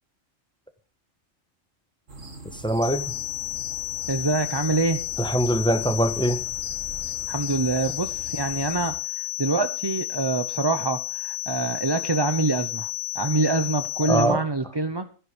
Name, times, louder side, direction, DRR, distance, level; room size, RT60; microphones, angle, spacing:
sound 1, 2.1-8.9, right 3 dB, 70° right, 3.1 m, -42 dB
voice 1, 2.5-3.1 5.2-6.4 14.1-14.4, right 1 dB, 5° left, 1.3 m, -23 dB
sound 2, 2.8-14.2, left 16 dB, 50° left, 1.6 m, -32 dB
voice 2, 4.1-5.0 7.3-15.1, right 3 dB, 25° right, 0.7 m, -25 dB
15.0 x 11.0 x 5.2 m
omnidirectional pair, 1.4 m